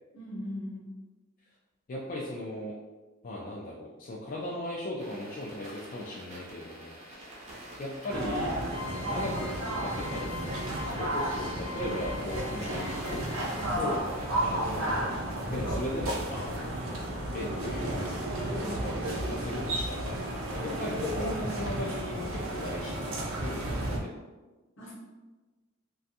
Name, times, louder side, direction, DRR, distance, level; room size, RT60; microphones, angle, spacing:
voice 1, 0.1-1.0 11.7-12.0 13.6-13.8 18.4-18.7 24.8-24.9, left 1 dB, 65° left, -5 dB, 0.9 m, -40 dB
voice 2, 1.9-2.7 3.2-7.3 7.8-13.2 13.8-14.0 14.4-15.1 15.5-16.8 17.3-18.1 18.4-20.2 20.6-24.1, left 1 dB, 45° left, -4 dB, 0.3 m, -37 dB
sound 1, 5.0-15.0, right 1 dB, 35° right, 0.5 m, -47 dB
sound 2, 8.1-24.0, right 1 dB, 85° right, 0.5 m, -33 dB
sound 3, 8.7-13.9, left 5 dB, 60° right, 0.9 m, -44 dB
2.5 x 2.3 x 2.7 m, 1.2 s
head